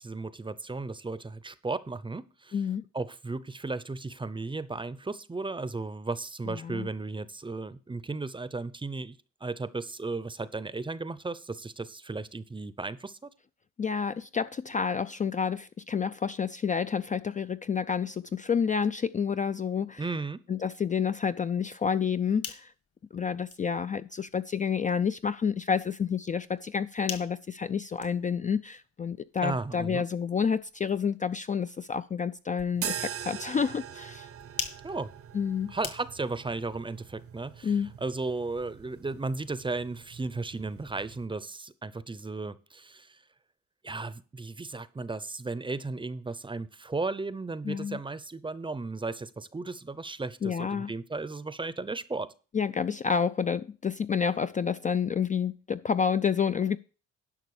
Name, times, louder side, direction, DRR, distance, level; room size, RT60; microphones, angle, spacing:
voice 1, 0.0-2.6 2.9-9.2 9.4-13.2 20.0-20.4 29.4-30.0 34.8-35.1 35.7-43.2 43.8-52.3, right 3 dB, 15° right, 0.7 m, -35 dB
voice 2, 2.5-2.8 6.5-6.9 13.8-20.0 20.5-22.7 23.1-34.3 35.3-35.7 37.6-37.9 47.6-48.0 50.4-50.9 52.5-56.8, left 6 dB, 25° left, 0.4 m, -29 dB
sound 1, 22.0-36.5, left 6 dB, 55° left, 1.9 m, -46 dB
sound 2, 32.7-41.3, right 9 dB, 50° right, 0.8 m, -42 dB
11.0 x 6.0 x 4.8 m
cardioid pair, 90°, 30 cm